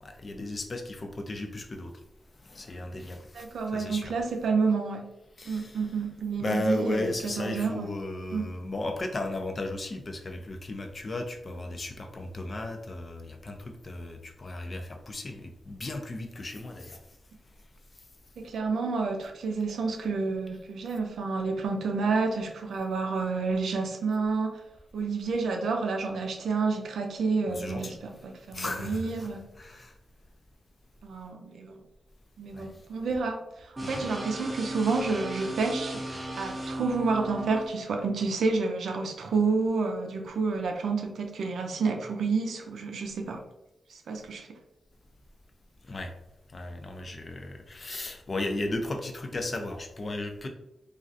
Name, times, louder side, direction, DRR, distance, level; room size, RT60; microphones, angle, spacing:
voice 1, 0.0-1.9 2.4-4.1 5.4-5.8 6.4-17.0 27.5-28.0 28.5-29.3 29.6-29.9 32.5-32.7 33.8-34.1 45.9-46.1 46.5-50.5, left 2 dB, 35° left, 5 dB, 0.4 m, -35 dB
voice 2, 3.3-5.0 5.5-7.9 8.3-8.5 18.4-24.6 24.9-29.5 31.0-31.8 32.4-36.0 36.4-43.4 43.9-44.5, right 4 dB, 90° right, 3 dB, 0.4 m, -29 dB
sound 1, 33.8-37.7, right 1 dB, 20° right, 0.6 m, -36 dB
3.1 x 2.4 x 2.6 m, 0.90 s
wide cardioid pair, 130°, 0 cm